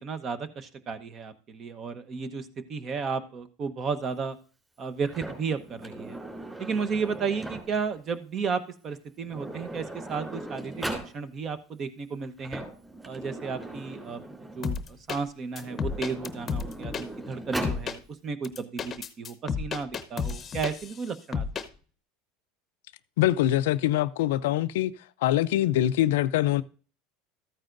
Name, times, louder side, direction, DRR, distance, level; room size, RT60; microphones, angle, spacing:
voice 1, 0.0-4.4 4.8-6.2 6.6-12.6 13.0-14.2 14.6-21.5, right 5 dB, 35° right, 1.0 m, -33 dB
Sliding door, 5.1-7.9 8.9-9.0 9.3-11.1 12.2-14.8 15.5-17.8, right 1 dB, 10° right, 3.2 m, -39 dB
sound 1, 14.6-15.2 15.6-17.0 17.6-18.0 18.4-21.0 21.3-21.7, left 6 dB, 25° left, 0.9 m, -31 dB
voice 2, 23.2-24.9 25.2-26.6, left 13 dB, 90° left, 0.5 m, -24 dB
13.5 x 9.0 x 2.6 m
supercardioid pair, 135°, 0 cm